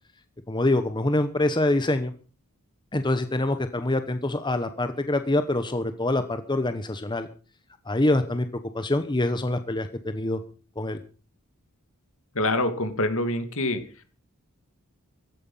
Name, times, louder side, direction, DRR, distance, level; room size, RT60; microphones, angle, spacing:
voice 1, 0.5-2.1 2.9-7.3 7.9-8.4 8.7-10.4 10.8-11.0, left 2 dB, 20° left, 9 dB, 1.1 m, -25 dB
voice 2, 12.3-13.8, left 1 dB, 65° left, 9 dB, 2.4 m, -25 dB
16.5 x 13.0 x 5.6 m, 0.39 s
head